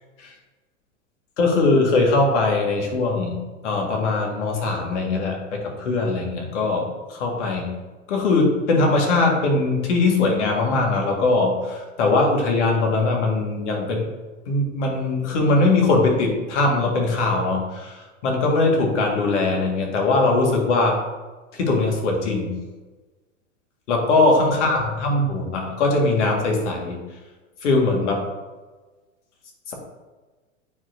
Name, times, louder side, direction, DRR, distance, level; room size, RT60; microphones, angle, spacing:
voice 1, 1.4-3.4 3.6-7.8 8.1-14.1 14.5-21.0 21.5-22.5 23.9-27.0 27.6-28.3 29.7-29.8, left 3 dB, 60° left, 0 dB, 1.9 m, -21 dB
9.2 x 4.8 x 2.7 m, 1.2 s
hypercardioid pair, 100°, 39 cm